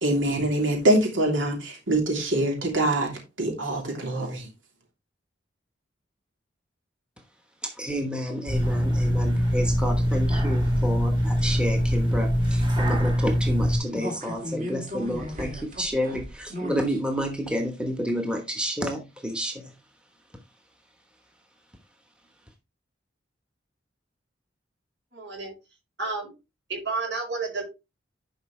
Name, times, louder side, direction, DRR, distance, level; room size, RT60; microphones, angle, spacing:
voice 1, 0.0-3.1 3.4-4.5, right 1 dB, 85° right, 3.0 m, -24 dB
voice 2, 7.6-19.6, equal, 5° right, 1.1 m, -30 dB
sound 1, 8.5-13.8, equal, 25° right, 2.5 m, -23 dB
sound 2, 13.9-17.0 17.4-17.5, equal, 40° right, 2.5 m, -35 dB
voice 3, 25.1-25.5 26.0-26.3 26.7-27.6, right 3 dB, 65° right, 5.2 m, -30 dB
11.0 x 5.1 x 3.2 m
head